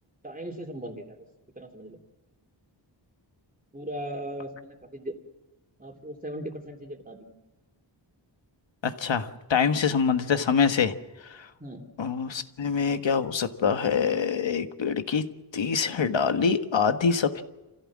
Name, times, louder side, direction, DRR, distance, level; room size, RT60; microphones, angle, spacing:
voice 1, 0.2-1.2 1.5-2.0 3.7-5.1 5.8-7.3 11.6-11.9, right 1 dB, 20° right, 3 dB, 3.1 m, -38 dB
voice 2, 8.8-10.9 11.4-11.5 12.0-15.3 15.5-17.4, left 6 dB, 70° left, 8 dB, 1.5 m, -25 dB
28.0 x 15.5 x 7.5 m, 1.1 s
wide cardioid pair, 100°, 46 cm